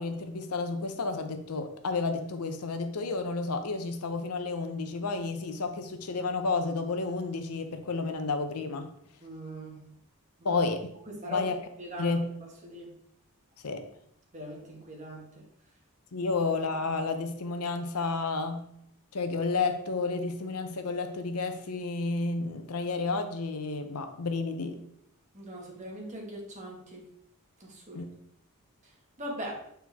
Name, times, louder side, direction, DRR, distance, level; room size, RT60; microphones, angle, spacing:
voice 1, 0.0-8.9 10.4-10.9 11.3-11.6 12.0-12.3 13.6-13.9 16.1-18.7 19.1-24.8 27.9-28.1, left 3 dB, 85° left, 7 dB, 0.8 m, -31 dB
voice 2, 9.2-9.9 10.4-10.6 11.1-12.2 12.6-12.9 14.3-15.3 25.3-27.0 27.6-28.0 29.2-29.6, equal, 35° right, -1 dB, 1.7 m, -40 dB
8.0 x 4.5 x 3.5 m, 0.72 s
head